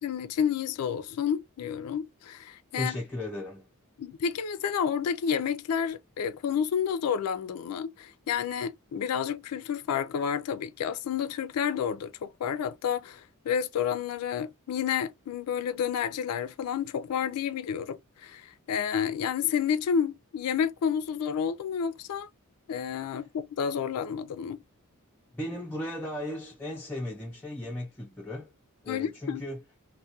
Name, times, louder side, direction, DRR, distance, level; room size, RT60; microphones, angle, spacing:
voice 1, 0.0-3.0 4.0-22.3 22.7-24.6 28.9-29.4, left 7 dB, 85° left, 0.3 m, -30 dB
voice 2, 2.7-3.7 25.3-28.5 28.8-29.6, left 1 dB, 10° left, 0.4 m, -36 dB
2.3 x 2.1 x 2.6 m
head